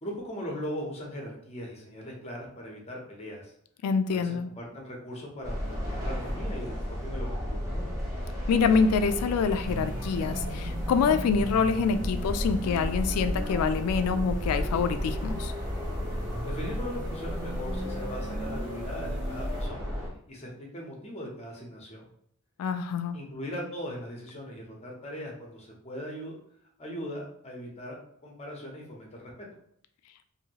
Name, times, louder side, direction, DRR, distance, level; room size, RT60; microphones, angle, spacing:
voice 1, 0.0-3.5 4.1-7.9 16.4-19.9 20.3-22.1 23.1-26.4 26.8-28.0 28.2-29.5, equal, 30° left, -1 dB, 0.8 m, -39 dB
voice 2, 3.8-4.5 8.5-15.5 22.6-23.2, left 5 dB, 85° left, 14 dB, 0.3 m, -26 dB
sound 1, 5.4-20.1, equal, 15° right, 0.9 m, -33 dB
sound 2, 9.7-19.7, right 1 dB, 85° right, 0.9 m, -40 dB
2.8 x 2.7 x 2.8 m, 0.67 s
head